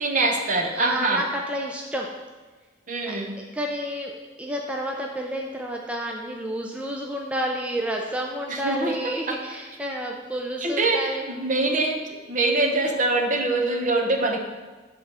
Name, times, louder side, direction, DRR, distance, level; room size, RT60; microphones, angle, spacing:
voice 1, 0.0-1.2 2.9-3.4 8.5-8.9 10.6-11.0 11.3-12.0 12.3-14.4, right 2 dB, 45° right, 2 dB, 0.8 m, -23 dB
voice 2, 0.8-2.1 3.1-4.1 4.4-11.2, equal, 5° right, 0 dB, 0.4 m, -30 dB
8.0 x 3.7 x 4.2 m, 1.3 s
head